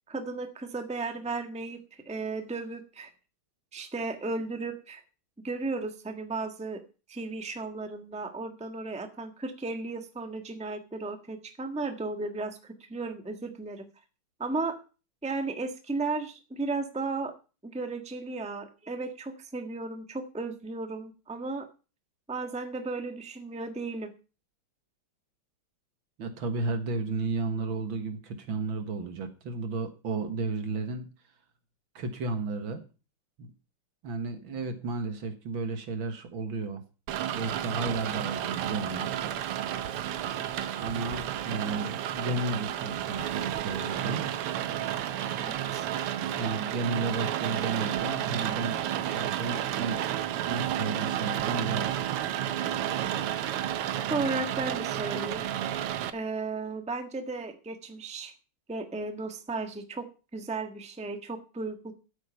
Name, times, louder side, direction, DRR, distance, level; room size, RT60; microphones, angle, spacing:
voice 1, 0.1-3.1 3.7-5.0 5.4-6.8 7.1-13.9 14.4-14.8 15.2-17.3 17.6-21.7 22.3-24.1 45.4-45.9 54.1-55.5 56.1-58.3 58.7-60.1 60.3-61.9, right 3 dB, 5° right, 6 dB, 1.1 m, -35 dB
voice 2, 26.2-31.1 32.0-32.8 33.4-33.5 34.0-36.8 37.3-39.2 40.8-44.2 46.3-50.0 50.4-52.1, right 3 dB, 65° right, 8 dB, 2.3 m, -33 dB
Rain, 37.1-56.1, right 11 dB, 85° right, 1.9 m, -31 dB
13.5 x 8.7 x 5.6 m, 0.34 s
omnidirectional pair, 2.4 m